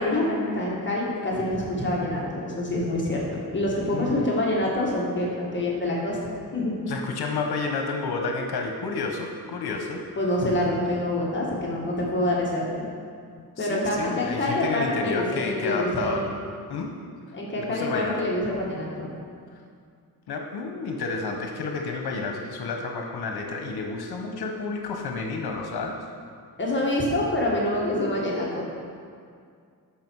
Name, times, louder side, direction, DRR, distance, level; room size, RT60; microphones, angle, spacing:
voice 1, 0.0-6.8 10.2-12.9 13.6-16.3 17.3-19.1 26.6-28.6, left 1 dB, 30° left, -4 dB, 1.7 m, -26 dB
voice 2, 3.9-4.2 6.9-10.0 11.8-11.9 13.6-16.3 16.7-16.9 17.7-18.2 20.3-26.0, left 4 dB, 80° left, 2 dB, 1.0 m, -30 dB
13.0 x 5.8 x 4.7 m, 2.2 s
wide cardioid pair, 125°, 38 cm